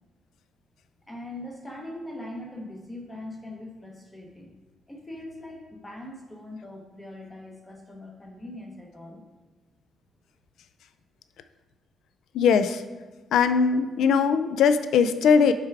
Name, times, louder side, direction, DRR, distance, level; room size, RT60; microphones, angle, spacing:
voice 1, 1.1-4.5 4.9-9.2, left 1 dB, 10° left, 0 dB, 0.7 m, -41 dB
voice 2, 12.3-12.8 13.3-15.5, left 6 dB, 75° left, 11 dB, 0.3 m, -20 dB
6.5 x 3.4 x 4.6 m, 1.3 s
cardioid pair, 165°, 0 cm